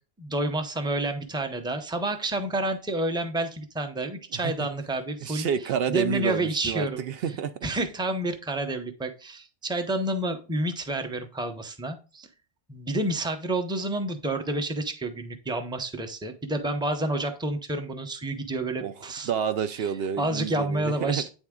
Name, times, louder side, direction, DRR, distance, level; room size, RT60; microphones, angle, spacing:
voice 1, 0.2-5.5 5.9-7.0 7.6-12.3 12.7-19.3 19.7-19.9 20.2-21.3, right 1 dB, 5° right, 0.6 m, -29 dB
voice 2, 5.2-7.5 18.8-18.9 19.3-21.2, right 8 dB, 75° right, 0.8 m, -29 dB
8.9 x 3.6 x 3.6 m
omnidirectional pair, 1.0 m